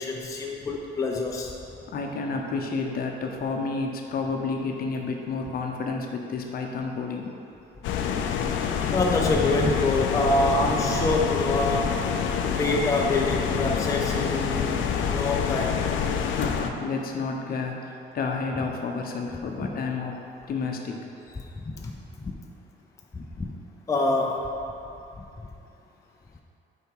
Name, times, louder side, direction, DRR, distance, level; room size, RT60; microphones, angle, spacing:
voice 1, 0.0-1.5 8.9-12.0 12.4-16.1 21.5-22.3 23.1-23.5 23.9-24.4, left 2 dB, 15° left, -1 dB, 0.5 m, -26 dB
voice 2, 1.9-7.3 16.3-20.2 20.5-21.5, left 4 dB, 50° left, 2 dB, 0.7 m, -30 dB
sound 1, 7.8-16.7, left 7 dB, 85° left, 0.5 m, -27 dB
6.8 x 4.7 x 4.7 m, 2.7 s
cardioid pair, 155°, 19 cm